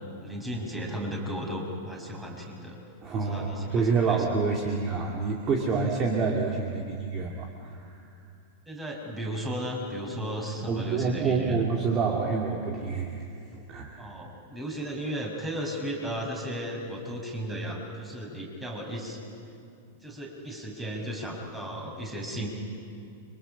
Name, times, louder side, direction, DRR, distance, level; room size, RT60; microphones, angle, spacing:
voice 1, 0.2-2.8 3.1-4.2 8.7-11.6 14.0-19.2 20.0-22.5, equal, 10° right, -1 dB, 5.8 m, -35 dB
voice 2, 3.0-7.8 10.7-13.2 13.5-14.0, right 4 dB, 30° right, 0 dB, 2.4 m, -27 dB
29.5 x 25.0 x 5.7 m, 2.4 s
figure-of-eight pair, 95°, 0 cm